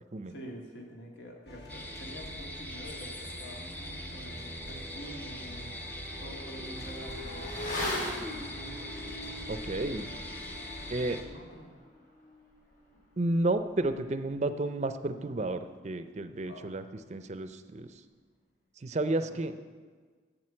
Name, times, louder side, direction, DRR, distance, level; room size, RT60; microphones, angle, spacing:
voice 1, 0.2-5.8 6.2-7.5 8.4-8.8 11.1-11.8 12.9-13.0 16.3-16.7 19.2-19.4, equal, 85° left, 0 dB, 2.0 m, -47 dB
sound 1, 1.5-11.3, left 1 dB, 65° left, 2.0 m, -46 dB
sound 2, 1.7-11.2, left 1 dB, 10° left, 0.8 m, -43 dB
Motorcycle / Accelerating revving vroom, 4.6-4.7 5.1-15.1 15.4-15.5, left 1 dB, 50° left, 3.2 m, -41 dB
voice 2, 9.5-10.1 10.9-11.2 13.2-16.8 17.1-17.9 18.8-19.5, right 2 dB, 40° right, 10 dB, 0.5 m, -31 dB
7.8 x 7.7 x 8.7 m, 1.5 s
head